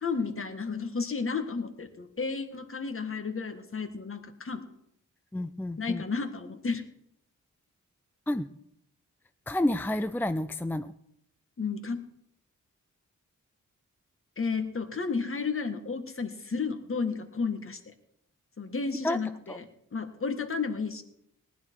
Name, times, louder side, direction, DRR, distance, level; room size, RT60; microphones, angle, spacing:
voice 1, 0.0-4.6 5.8-6.8 11.6-12.0 14.4-17.9 18.6-21.0, left 4 dB, 45° left, 7 dB, 1.8 m, -32 dB
voice 2, 5.3-6.0 8.3-8.5 9.5-10.9 19.0-19.2 19.5-19.6, left 1 dB, 5° left, 10 dB, 0.4 m, -29 dB
19.0 x 11.5 x 4.7 m, 0.77 s
wide cardioid pair, 110°, 31 cm